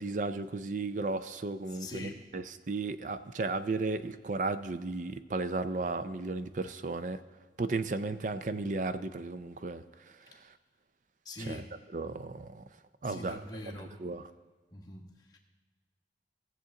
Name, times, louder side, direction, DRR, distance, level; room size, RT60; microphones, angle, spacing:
voice 1, 0.0-7.2 7.6-10.1 11.5-11.6 11.9-12.6 13.0-13.4 14.0-14.2, right 3 dB, 45° right, 12 dB, 0.5 m, -34 dB
voice 2, 1.7-2.3 10.3-10.4 11.2-11.7 13.0-14.0 14.7-15.4, left 1 dB, 20° left, 0 dB, 1.3 m, -44 dB
18.5 x 7.1 x 3.8 m, 1.4 s
head